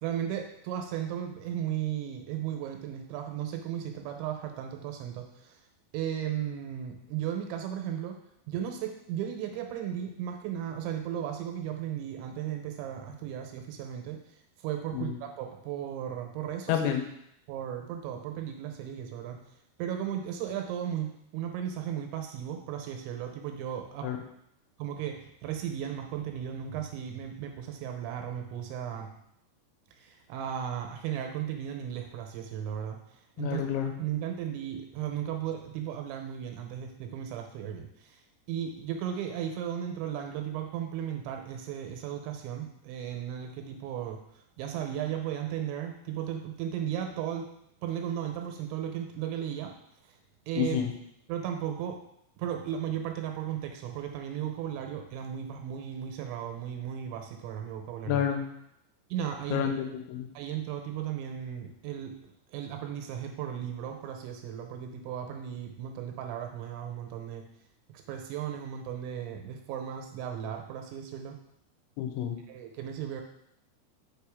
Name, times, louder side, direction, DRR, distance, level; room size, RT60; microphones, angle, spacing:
voice 1, 0.0-5.6 5.9-8.2 8.5-14.2 14.6-16.8 17.5-19.4 19.8-24.1 24.8-29.1 30.0-33.0 33.4-33.6 34.0-38.2 38.5-44.2 44.6-47.5 47.8-49.7 50.5-50.8 51.3-52.0 52.4-58.2 59.1-59.7 60.3-67.5 68.1-71.4 72.5-73.2, right 9 dB, 90° right, 4 dB, 3.1 m, -35 dB
voice 2, 16.7-17.0 24.0-24.2 33.4-33.9 50.6-50.9 58.1-58.5 59.5-60.3 72.0-72.4, left 9 dB, 85° left, 5 dB, 3.0 m, -29 dB
6.4 x 5.1 x 3.5 m, 0.74 s
omnidirectional pair, 5.3 m